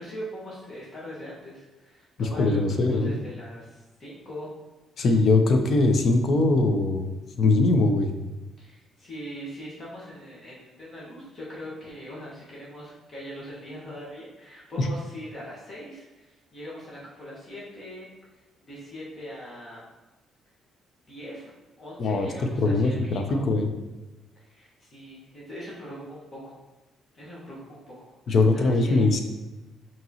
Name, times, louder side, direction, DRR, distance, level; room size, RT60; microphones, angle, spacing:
voice 1, 0.0-4.6 5.0-5.1 8.6-18.1 18.7-19.8 21.1-21.5 21.8-23.5 24.4-26.5 27.1-29.0, equal, 40° left, -6 dB, 1.3 m, -41 dB
voice 2, 2.2-3.1 5.0-7.1 7.4-8.1 14.8-14.9 22.0-22.3 22.6-23.7 28.3-29.2, left 3 dB, 55° left, 6 dB, 0.5 m, -21 dB
5.3 x 2.9 x 2.8 m, 1.1 s
cardioid pair, 100°, 0 cm